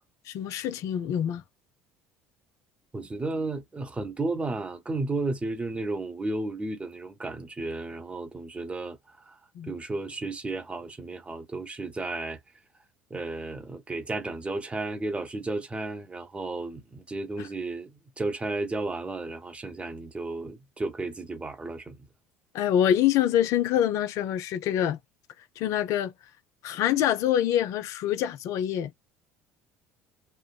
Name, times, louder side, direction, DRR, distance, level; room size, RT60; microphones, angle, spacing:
voice 1, 0.3-1.4 9.6-9.7 22.5-25.0 25.6-26.1 26.6-28.9, left 10 dB, 55° left, 0.4 m, -25 dB
voice 2, 2.9-9.0 9.3-9.4 9.7-12.4 13.1-22.0, right 2 dB, 15° right, 0.8 m, -33 dB
3.3 x 2.0 x 2.3 m
figure-of-eight pair, 60°, 7 cm